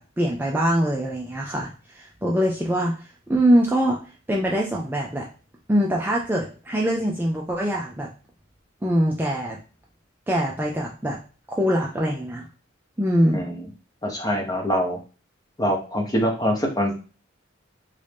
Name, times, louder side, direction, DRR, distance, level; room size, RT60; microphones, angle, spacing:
voice 1, 0.0-4.0 4.3-5.3 5.7-8.1 8.8-9.6 10.3-11.2 11.5-12.4 13.0-13.4, equal, 10° right, -2 dB, 0.4 m, -23 dB
voice 2, 14.0-15.0 15.6-17.0, equal, 20° left, 2 dB, 0.7 m, -24 dB
3.1 x 2.6 x 3.3 m, 0.35 s
head